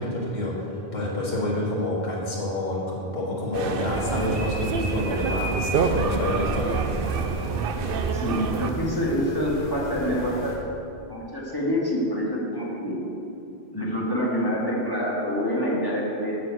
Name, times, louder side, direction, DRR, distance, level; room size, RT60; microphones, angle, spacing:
voice 1, 0.0-6.8, left 1 dB, 45° left, -5 dB, 2.1 m, -28 dB
sound 1, 3.5-8.7, right 5 dB, 65° right, 0.8 m, -27 dB
sound 2, 3.9-10.6, left 2 dB, 60° left, 1.9 m, -36 dB
voice 2, 8.1-10.5 11.1-13.0 13.7-16.3, equal, 20° left, -6 dB, 2.1 m, -26 dB
11.5 x 5.1 x 7.8 m, 2.8 s
omnidirectional pair, 1.1 m